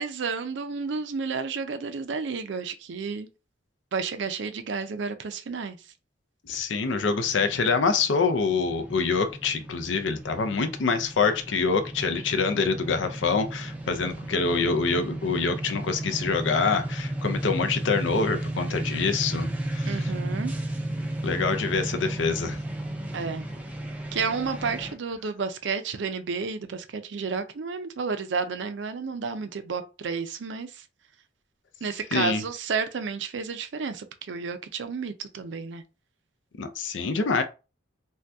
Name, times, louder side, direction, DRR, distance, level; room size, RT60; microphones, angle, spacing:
voice 1, 0.0-3.3 3.9-5.8 19.9-20.5 23.1-23.4 24.1-30.8 31.8-35.8, right 5 dB, 75° right, 0.5 m, -31 dB
voice 2, 6.4-20.1 21.2-22.6 32.1-32.4 36.6-37.4, left 4 dB, 85° left, 0.5 m, -26 dB
sound 1, 6.9-24.9, right 1 dB, 10° right, 0.4 m, -34 dB
2.7 x 2.2 x 3.4 m
head